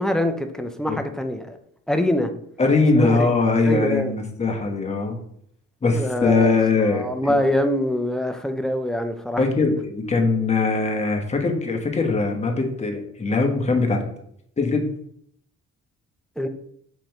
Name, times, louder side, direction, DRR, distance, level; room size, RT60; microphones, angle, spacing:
voice 1, 0.0-1.6 1.9-2.3 2.9-3.3 3.7-4.1 5.9-6.5 6.9-9.4 16.4-16.5, left 1 dB, ahead, 6 dB, 0.5 m, -24 dB
voice 2, 2.6-5.2 5.8-7.4 9.4-14.0 14.6-14.9, left 3 dB, 20° left, 3 dB, 0.9 m, -21 dB
5.5 x 3.0 x 2.9 m, 0.68 s
cardioid pair, 90°, 30 cm